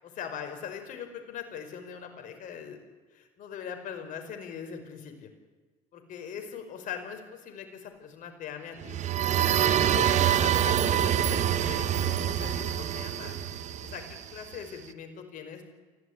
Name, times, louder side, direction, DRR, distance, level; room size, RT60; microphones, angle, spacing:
voice 1, 0.0-2.8 3.1-5.3 5.9-9.0 9.9-13.4 13.8-14.0 14.3-15.6, left 7 dB, 60° left, 6 dB, 5.5 m, -41 dB
sound 1, 8.8-14.6, right 10 dB, 50° right, 1.3 m, -26 dB
24.5 x 16.5 x 9.8 m, 1.3 s
supercardioid pair, 90°, 15 cm